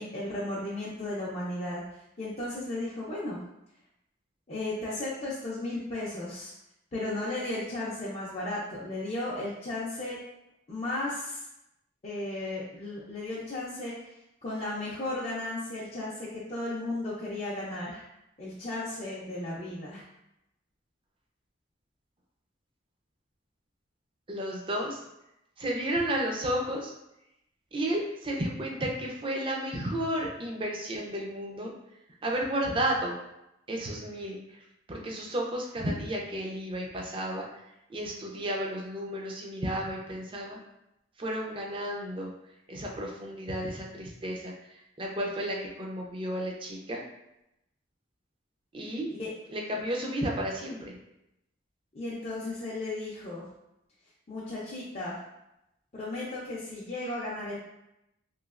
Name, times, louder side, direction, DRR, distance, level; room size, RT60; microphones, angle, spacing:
voice 1, 0.0-1.8 2.2-3.4 4.5-6.5 6.9-10.2 10.7-11.5 12.0-13.9 14.4-18.0 18.4-20.0 49.1-49.3 51.9-53.4 54.3-55.2 55.9-57.6, left 2 dB, 35° left, -7 dB, 0.5 m, -35 dB
voice 2, 24.3-25.0 25.6-26.9 27.7-31.7 32.2-33.1 33.7-34.6 34.9-37.6 37.9-40.6 41.2-42.3 42.7-47.0 48.7-49.1 49.5-51.0, right 1 dB, 25° right, -1 dB, 0.4 m, -32 dB
3.1 x 2.8 x 2.4 m, 0.87 s
head